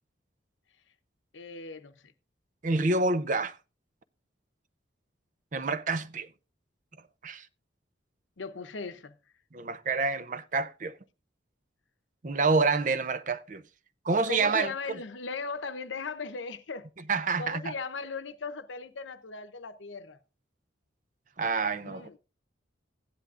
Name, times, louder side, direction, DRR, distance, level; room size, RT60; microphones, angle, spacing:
voice 1, 1.3-2.0 8.4-9.1 14.3-16.9 17.4-20.2 21.8-22.2, left 4 dB, 85° left, 0.8 m, -38 dB
voice 2, 2.6-3.6 5.5-6.3 7.2-7.5 9.5-10.9 12.2-13.6 14.0-14.7 17.1-17.7 21.4-22.1, right 3 dB, 45° right, 0.6 m, -27 dB
16.0 x 10.5 x 2.5 m
head